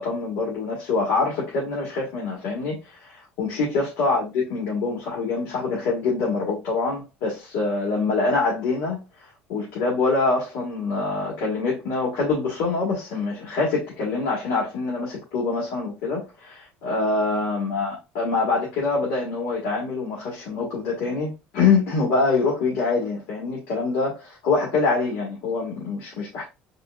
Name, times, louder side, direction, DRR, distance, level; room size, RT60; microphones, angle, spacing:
voice 1, 0.0-9.0 9.5-26.5, left 3 dB, 75° left, 1.8 m, -25 dB
4.2 x 3.6 x 2.4 m
cardioid pair, 155°, 4 cm